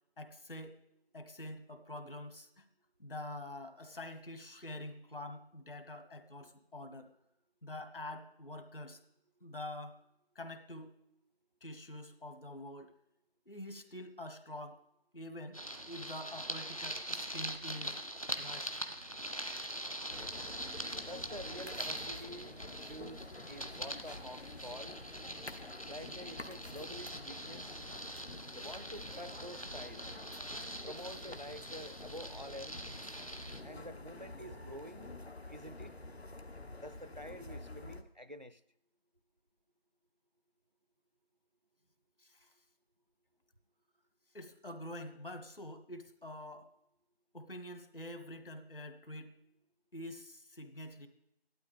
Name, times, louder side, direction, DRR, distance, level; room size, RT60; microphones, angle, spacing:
voice 1, 0.2-0.8 1.1-2.7 3.0-7.1 7.6-9.0 9.4-10.0 10.3-10.9 11.6-12.9 13.5-14.8 15.1-15.6 15.9-18.0 18.3-18.7 42.2-42.5 44.3-46.7 47.3-49.4 49.9-51.1, left 1 dB, 60° left, 8 dB, 1.5 m, -46 dB
sound 1, 15.5-33.6, right 1 dB, 35° left, 0.7 m, -43 dB
sound 2, 20.1-38.0, left 2 dB, 85° left, 1.3 m, -49 dB
voice 2, 21.0-25.0 25.9-27.8 28.5-30.1 30.8-32.9 33.6-35.2 35.5-36.0 36.8-38.6, equal, 45° right, 13 dB, 0.5 m, -48 dB
13.5 x 12.0 x 3.6 m, 0.82 s
figure-of-eight pair, 180°, 31 cm